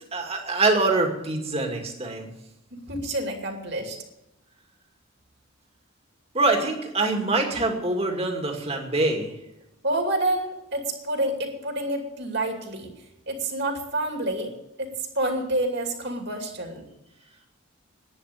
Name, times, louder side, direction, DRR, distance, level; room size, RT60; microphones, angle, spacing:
voice 1, 0.1-2.3 6.3-9.3, right 2 dB, 30° right, 3 dB, 2.3 m, -24 dB
voice 2, 2.7-4.0 9.8-12.9 13.3-14.9 15.2-16.8, right 1 dB, 55° right, 3 dB, 2.6 m, -28 dB
11.0 x 9.9 x 9.1 m, 0.90 s
head